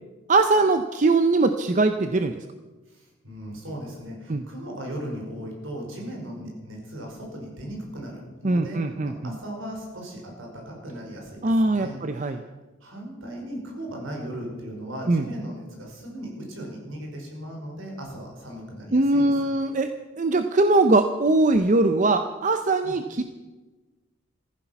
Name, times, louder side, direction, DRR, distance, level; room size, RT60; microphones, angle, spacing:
voice 1, 0.3-2.4 4.3-4.4 8.4-9.1 11.4-12.4 15.1-15.2 18.9-23.2, right 2 dB, 40° right, 9 dB, 0.6 m, -21 dB
voice 2, 2.9-12.5 12.8-19.3 22.8-22.9, right 1 dB, 70° right, 0 dB, 5.1 m, -37 dB
15.5 x 14.5 x 5.9 m, 1.2 s
head